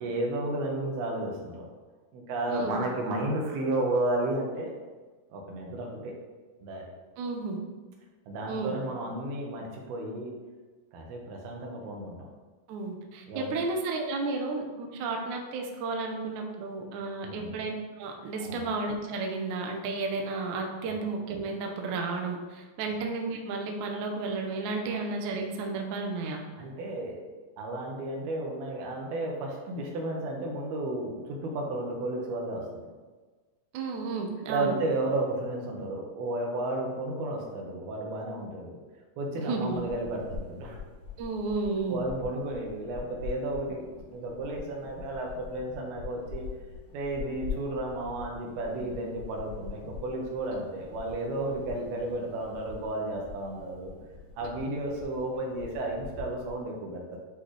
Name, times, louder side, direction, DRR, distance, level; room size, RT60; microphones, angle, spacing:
voice 1, 0.0-1.7 2.1-4.7 5.3-6.1 6.6-6.9 8.3-10.3 10.9-12.2 13.3-13.5 17.2-17.5 18.4-18.6 20.8-21.0 26.6-27.2 27.6-32.8 34.5-38.8 39.2-40.8 41.9-43.8 44.1-46.4 46.9-53.9 54.4-57.2, right 2 dB, 90° right, 0 dB, 3.1 m, -33 dB
voice 2, 2.5-2.8 7.2-7.6 8.5-8.8 12.7-17.7 18.0-26.4 33.7-34.8 39.4-39.9 41.2-42.0, right 3 dB, 70° right, 2 dB, 1.9 m, -32 dB
sound 1, 39.6-56.6, left 5 dB, 60° left, 1.9 m, -44 dB
10.5 x 4.2 x 3.2 m, 1.3 s
omnidirectional pair, 4.3 m